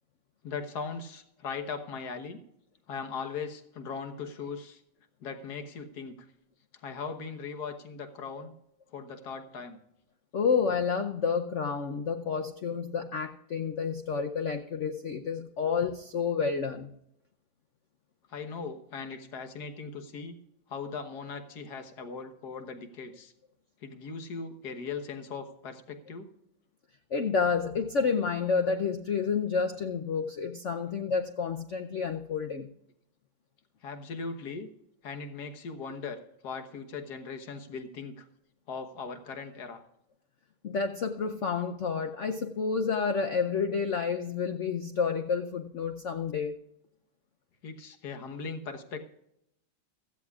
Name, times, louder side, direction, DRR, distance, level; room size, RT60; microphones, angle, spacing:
voice 1, 0.4-2.4 2.9-4.8 5.2-6.2 6.7-8.5 8.9-9.8 18.3-20.4 20.7-23.3 23.8-26.3 33.8-34.7 35.0-38.2 38.7-39.8 47.6-49.0, left 5 dB, 55° left, 6 dB, 1.7 m, -39 dB
voice 2, 10.3-16.9 27.1-32.7 40.6-46.5, left 5 dB, 85° left, 6 dB, 0.6 m, -29 dB
16.5 x 14.0 x 2.4 m, 0.79 s
omnidirectional pair, 2.2 m